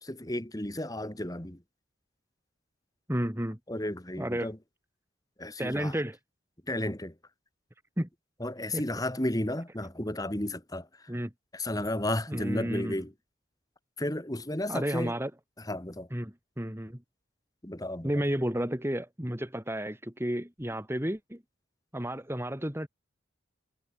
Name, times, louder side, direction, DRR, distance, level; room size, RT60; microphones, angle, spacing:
voice 1, 0.0-1.6 3.7-4.6 5.4-5.9 6.7-7.1 8.4-10.9 11.5-13.1 14.0-15.1 15.6-16.1 17.6-18.2, left 1 dB, 20° left, 2.4 m, -33 dB
voice 2, 3.1-3.6 4.2-4.5 5.6-6.2 8.0-8.1 8.7-8.8 11.1-11.3 12.3-12.9 14.7-15.3 16.1-17.0 18.0-21.4 21.9-22.9, equal, 10° right, 1.9 m, -32 dB
head